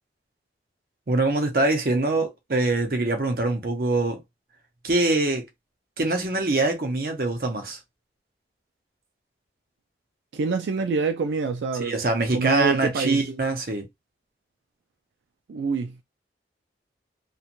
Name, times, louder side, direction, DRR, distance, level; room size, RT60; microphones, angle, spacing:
voice 1, 1.1-4.2 4.8-5.4 6.0-7.8 11.8-13.9, right 2 dB, 55° right, 0.7 m, -24 dB
voice 2, 10.3-12.0 12.3-13.3 15.5-16.0, right 4 dB, 85° right, 0.4 m, -26 dB
2.9 x 2.2 x 2.5 m
head